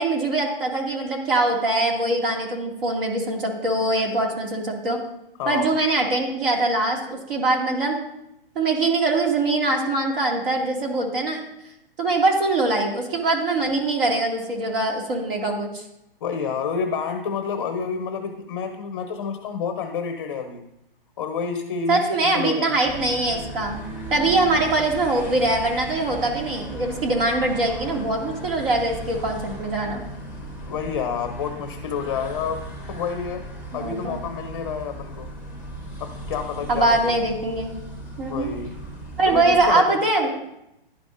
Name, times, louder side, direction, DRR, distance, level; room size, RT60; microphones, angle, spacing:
voice 1, 0.0-5.0 5.5-8.0 8.6-11.4 12.0-15.8 21.9-23.8 24.1-30.0 33.7-34.2 36.7-37.8 38.2-38.6 39.2-40.4, right 2 dB, 65° right, 0 dB, 2.3 m, -23 dB
voice 2, 5.4-5.7 16.2-20.6 21.2-22.8 24.6-24.7 30.6-35.3 36.0-37.1 38.3-38.8 39.3-40.0, left 6 dB, 30° left, 7 dB, 0.6 m, -29 dB
sound 1, 22.8-39.7, right 1 dB, 5° right, 0.9 m, -36 dB
11.5 x 5.1 x 2.5 m, 0.83 s
hypercardioid pair, 155°, 29 cm